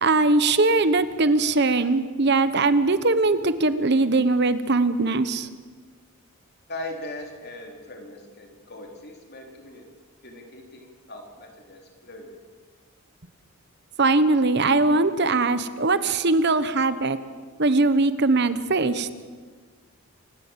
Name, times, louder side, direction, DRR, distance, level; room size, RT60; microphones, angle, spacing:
voice 1, 0.0-5.5 14.0-17.2 17.6-19.1, right 3 dB, 50° right, 13 dB, 1.0 m, -21 dB
voice 2, 6.7-9.8 10.2-12.4, left 1 dB, 50° left, 2 dB, 4.0 m, -40 dB
28.0 x 17.0 x 7.5 m, 1.5 s
head